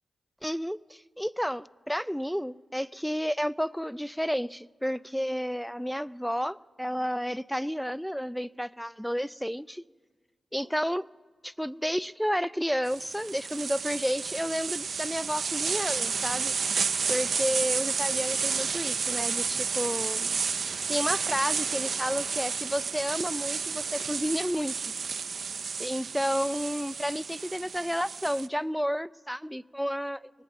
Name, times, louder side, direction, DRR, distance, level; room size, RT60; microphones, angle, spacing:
voice 1, 0.4-9.8 10.5-11.1 11.4-16.5 17.1-20.3 20.9-24.7 25.8-30.3, equal, ahead, 0.3 m, -31 dB
sound 1, 12.9-28.5, right 5 dB, 75° right, 0.4 m, -31 dB
19.0 x 8.9 x 7.7 m
cardioid pair, 40°, 0 cm